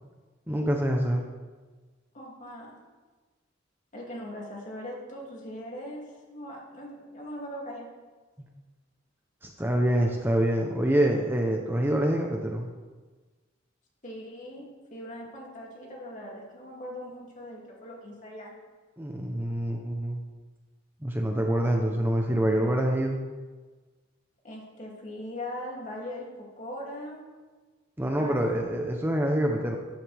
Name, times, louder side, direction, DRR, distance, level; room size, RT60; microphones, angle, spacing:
voice 1, 0.5-1.3 9.4-12.7 19.0-20.2 21.0-23.2 28.0-29.8, right 1 dB, 10° right, 1 dB, 0.9 m, -26 dB
voice 2, 2.1-2.8 3.9-7.9 14.0-18.5 24.4-27.3 28.2-28.4, left 1 dB, 40° left, -2 dB, 2.8 m, -40 dB
13.5 x 10.5 x 3.5 m, 1.3 s
head